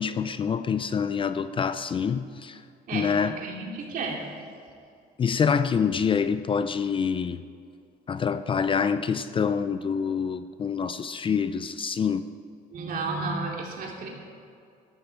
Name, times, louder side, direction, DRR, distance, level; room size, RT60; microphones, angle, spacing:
voice 1, 0.0-2.6 2.9-3.4 5.2-7.4 8.1-12.2, left 6 dB, 30° left, 12 dB, 0.4 m, -26 dB
voice 2, 2.9-4.2 12.7-14.1, right 3 dB, 55° right, 0 dB, 2.7 m, -32 dB
13.0 x 11.5 x 4.6 m, 2.3 s
cardioid pair, 110°, 17 cm